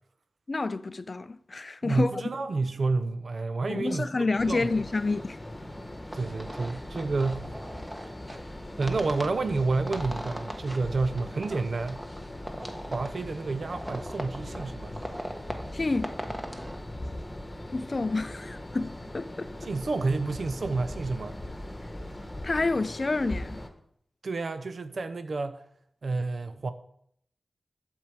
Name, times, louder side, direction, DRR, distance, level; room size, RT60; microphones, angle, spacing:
voice 1, 0.5-2.2 3.7-5.4 15.7-16.2 17.7-19.5 22.4-23.6, left 3 dB, 40° left, 0.4 m, -29 dB
voice 2, 1.8-4.1 4.4-4.7 6.1-7.5 8.0-8.4 8.8-12.1 12.9-14.9 19.6-21.4 24.2-25.6 26.0-26.7, right 3 dB, 60° right, 0.7 m, -30 dB
sound 1, 4.4-23.7, left 1 dB, 15° left, 1.3 m, -40 dB
sound 2, 6.1-16.8, equal, 10° right, 1.1 m, -41 dB
12.0 x 4.5 x 7.5 m
wide cardioid pair, 105°, 0 cm